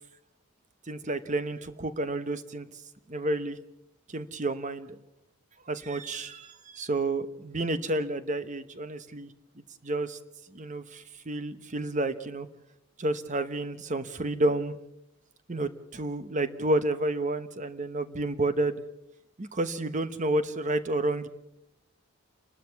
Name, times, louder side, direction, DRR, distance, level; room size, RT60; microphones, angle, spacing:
voice 1, 0.9-2.7 3.1-3.6 4.1-5.0 5.7-9.3 9.8-10.2 10.5-12.5 13.0-14.8 15.5-18.8 19.4-21.3, right 2 dB, 35° right, 12 dB, 1.1 m, -30 dB
29.5 x 12.5 x 7.1 m, 0.83 s
head